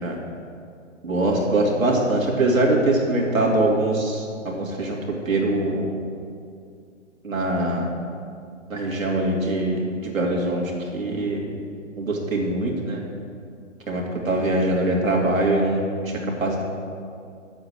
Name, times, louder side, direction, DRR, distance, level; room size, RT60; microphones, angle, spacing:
voice 1, 1.0-5.0 5.3-5.9 7.2-7.9 8.7-11.4 12.0-13.0 13.9-16.6, right 2 dB, 85° right, -1 dB, 2.6 m, -23 dB
9.6 x 7.8 x 6.3 m, 2.3 s
hypercardioid pair, 140°, 40 cm